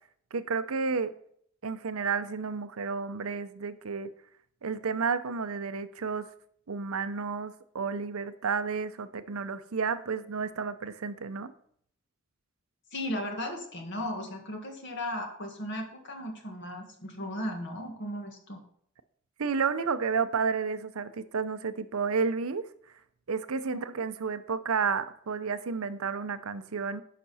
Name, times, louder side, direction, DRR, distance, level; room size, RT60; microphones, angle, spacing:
voice 1, 0.3-1.1 1.6-4.1 4.6-6.3 6.7-11.5 19.4-22.7 23.3-27.0, right 5 dB, 75° right, 12 dB, 0.6 m, -31 dB
voice 2, 12.9-18.6 23.7-23.8, left 1 dB, 55° left, 2 dB, 1.9 m, -36 dB
10.0 x 5.9 x 4.2 m, 0.64 s
head